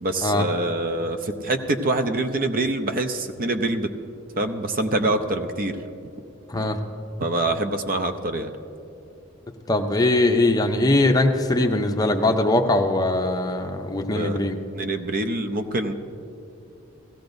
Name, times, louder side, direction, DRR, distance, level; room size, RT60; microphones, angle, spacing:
voice 1, 0.0-3.9 4.4-5.8 6.5-6.7 7.2-8.5 14.1-14.4 14.7-15.9, right 2 dB, 45° right, 7 dB, 0.6 m, -25 dB
voice 2, 6.5-6.8 9.7-14.6, left 2 dB, 20° left, 4 dB, 0.6 m, -21 dB
16.0 x 15.5 x 2.6 m, 2.7 s
head